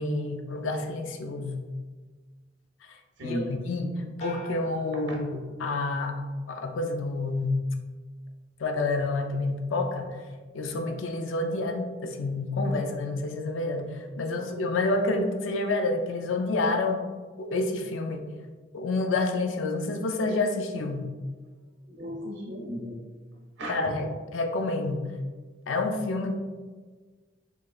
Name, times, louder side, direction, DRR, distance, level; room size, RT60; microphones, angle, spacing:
voice 1, 0.0-1.6 3.2-6.2 6.5-7.6 8.6-10.2 10.5-17.0 17.4-18.2 18.7-21.1 23.7-25.1 25.7-26.4, left 2 dB, 85° left, 5 dB, 0.4 m, -28 dB
voice 2, 3.2-3.6 14.4-14.5 21.9-23.0 23.6-23.8, equal, 70° right, -2 dB, 0.9 m, -35 dB
sound 1, 4.2-5.9 6.3-6.9, equal, 35° left, 0.7 m, -47 dB
3.8 x 3.2 x 2.4 m, 1.4 s
head